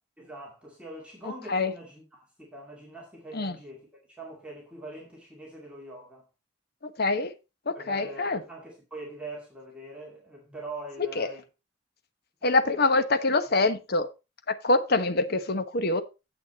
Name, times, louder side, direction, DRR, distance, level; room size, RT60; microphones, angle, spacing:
voice 1, 0.2-6.3 7.7-11.5 12.4-12.5 12.7-12.9, right 2 dB, 5° right, 2.3 m, -43 dB
voice 2, 7.0-7.3 7.7-8.4 11.2-11.3 12.4-14.1 14.5-16.0, left 2 dB, 55° left, 1.0 m, -25 dB
9.1 x 7.6 x 4.1 m
head